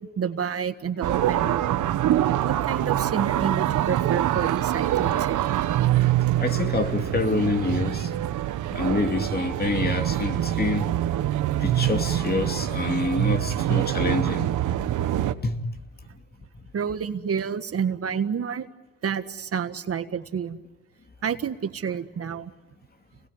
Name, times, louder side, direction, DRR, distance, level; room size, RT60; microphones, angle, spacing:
voice 1, 0.0-1.8 2.4-5.4 16.7-18.7 19.0-20.6 21.2-22.5, right 7 dB, 50° right, 1.6 m, -29 dB
sound 1, 1.0-15.3, right 12 dB, 80° right, 1.2 m, -25 dB
voice 2, 6.4-8.1 8.7-11.0 11.6-14.5 15.4-15.6, left 3 dB, 30° left, 2.7 m, -27 dB
29.5 x 20.5 x 9.8 m
cardioid pair, 90°, 30 cm